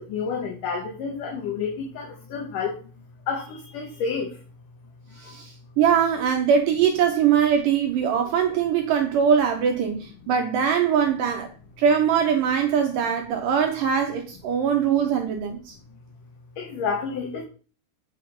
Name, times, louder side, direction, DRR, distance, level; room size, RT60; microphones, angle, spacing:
voice 1, 0.0-2.8 3.3-4.3 5.3-5.4 16.6-17.4, left 5 dB, 65° left, 2.9 m, -29 dB
voice 2, 5.2-11.5 11.8-15.7, right 7 dB, 70° right, 2.4 m, -22 dB
8.7 x 5.3 x 5.3 m
omnidirectional pair, 4.3 m